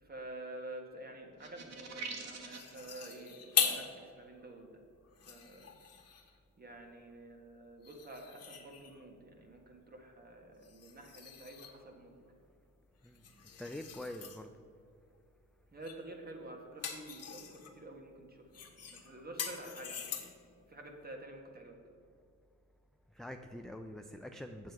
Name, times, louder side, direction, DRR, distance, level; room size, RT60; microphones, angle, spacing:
voice 1, 0.0-4.8 5.3-5.7 6.6-12.2 15.7-20.1 20.7-21.8, right 1 dB, 30° right, 2 dB, 1.5 m, -49 dB
sound 1, 1.4-2.7, right 4 dB, 60° right, 1.2 m, -44 dB
sound 2, 2.5-3.9 4.4-4.5 5.0-6.4 7.8-9.1 10.6-11.8 13.0-14.4 15.8-16.1 16.4-17.7 18.5-20.5, left 7 dB, 55° left, 1.3 m, -40 dB
voice 2, 13.6-14.5 23.1-24.7, left 1 dB, ahead, 5 dB, 0.4 m, -45 dB
7.7 x 7.4 x 4.8 m, 2.3 s
cardioid pair, 90°, 30 cm